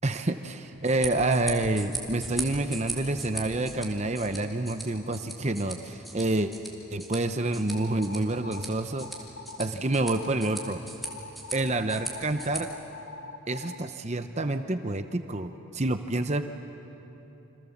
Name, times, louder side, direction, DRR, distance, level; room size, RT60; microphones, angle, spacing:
voice 1, 0.0-6.5 6.9-9.1 9.6-10.8 11.5-12.7 13.5-16.4, right 2 dB, 30° right, 8 dB, 0.8 m, -28 dB
sound 1, 0.7-12.6, right 1 dB, ahead, 2.7 m, -40 dB
sound 2, 7.7-8.6 9.0-9.7 10.0-10.7 11.0-13.8, left 4 dB, 50° left, 0.9 m, -43 dB
28.0 x 26.5 x 7.2 m, 3.0 s
head